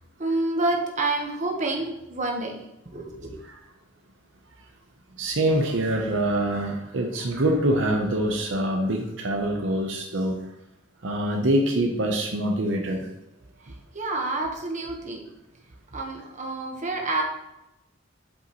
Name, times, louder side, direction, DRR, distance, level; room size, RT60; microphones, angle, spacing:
voice 1, 0.2-2.6 2.9-3.3 13.9-15.2 15.9-17.2, right 2 dB, 40° right, 1 dB, 1.2 m, -28 dB
voice 2, 5.2-10.4 11.0-13.1, right 1 dB, 65° right, 1 dB, 0.8 m, -25 dB
8.3 x 5.3 x 3.1 m, 0.91 s
head